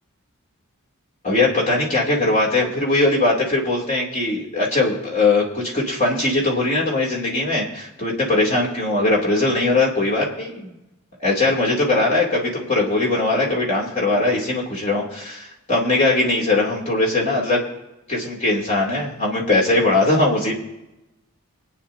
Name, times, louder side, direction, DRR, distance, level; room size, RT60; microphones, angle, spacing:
voice 1, 1.2-10.7 11.2-17.6 18.1-20.5, left 2 dB, 35° left, -2 dB, 2.9 m, -20 dB
25.0 x 9.5 x 2.8 m, 0.93 s
head